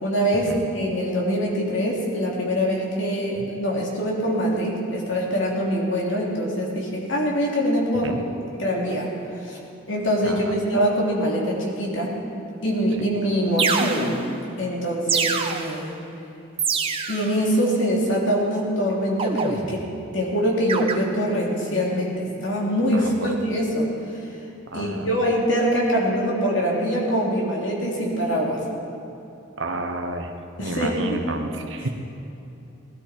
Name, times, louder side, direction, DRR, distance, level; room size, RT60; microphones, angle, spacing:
voice 1, 0.0-8.2 8.5-9.1 9.4-9.6 9.9-12.1 12.6-14.1 14.6-15.9 17.1-19.8 20.1-23.9 24.7-28.6 30.6-31.3, equal, 70° left, -3 dB, 3.1 m, -24 dB
voice 2, 10.2-10.5 13.0-13.1 22.9-23.4 24.7-25.1 29.6-30.3 30.6-31.9, right 2 dB, 70° right, 5 dB, 1.1 m, -31 dB
sound 1, 12.9-13.0 13.6-14.4 15.1-15.9 16.6-17.4 19.2-20.0 20.7-20.9, right 5 dB, 30° right, 0.8 m, -25 dB
19.0 x 12.5 x 4.5 m, 2.8 s
head